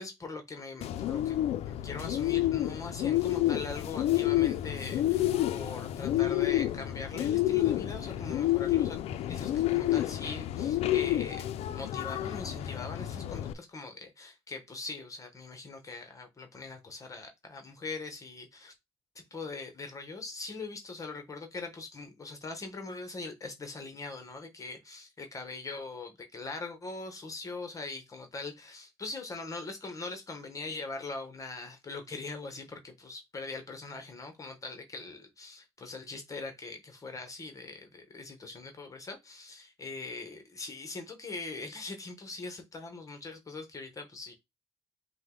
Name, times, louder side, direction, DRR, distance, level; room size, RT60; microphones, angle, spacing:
voice 1, 0.0-1.4 1.6-9.0 9.2-11.4 11.7-18.7 19.3-44.3, left 3 dB, 30° left, 1.0 m, -41 dB
Bird, 0.8-13.5, left 13 dB, 70° left, 0.4 m, -29 dB
5.2 x 2.2 x 3.7 m
cardioid pair, 90°, 11 cm